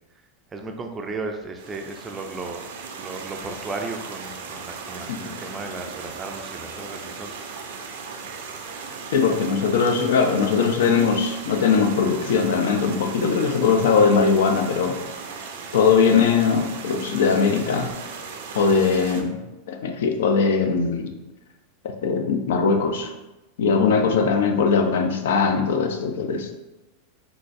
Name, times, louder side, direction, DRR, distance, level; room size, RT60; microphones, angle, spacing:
voice 1, 0.5-2.7 3.0-7.7 23.9-24.2, right 3 dB, 15° right, 4 dB, 0.3 m, -35 dB
sound 1, 1.6-19.2, right 5 dB, 80° right, 0.4 m, -37 dB
voice 2, 9.1-15.0 15.7-17.9 18.5-19.4 19.7-21.1 21.8-23.1 23.6-26.5, left 5 dB, 80° left, 6 dB, 0.4 m, -20 dB
3.8 x 2.3 x 2.5 m, 1.0 s
supercardioid pair, 145°, 0 cm